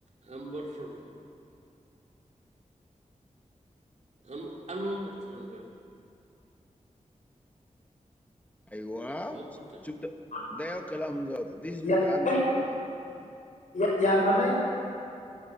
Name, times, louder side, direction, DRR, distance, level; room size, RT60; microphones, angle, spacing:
voice 1, 0.2-1.1 4.2-5.7 9.2-9.8, right 1 dB, 65° right, -1 dB, 2.9 m, -38 dB
voice 2, 8.7-9.4 9.8-10.1 10.5-12.3 13.2-13.4, left 1 dB, 10° left, 5 dB, 1.2 m, -36 dB
voice 3, 13.7-14.7, left 1 dB, 80° left, -3 dB, 5.0 m, -24 dB
16.0 x 11.0 x 7.8 m, 2.6 s
wide cardioid pair, 85°, 13 cm